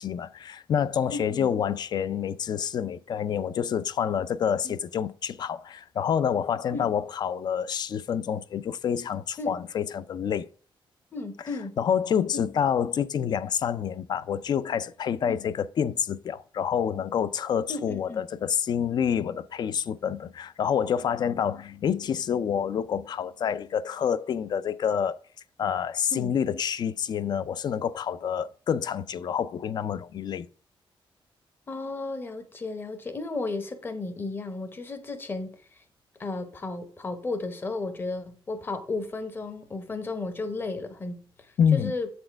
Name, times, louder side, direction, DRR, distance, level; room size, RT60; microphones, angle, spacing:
voice 1, 0.0-10.5 11.8-25.2 25.6-30.5 41.6-41.9, left 8 dB, 50° left, 0.4 m, -27 dB
voice 2, 1.1-1.5 4.6-4.8 6.7-6.9 9.4-9.6 11.1-11.8 12.3-12.5 15.3-15.4 17.7-18.2 26.1-26.3 31.7-35.8 36.2-42.1, left 3 dB, 25° left, 0.8 m, -34 dB
7.7 x 4.3 x 4.4 m
wide cardioid pair, 160°, 9 cm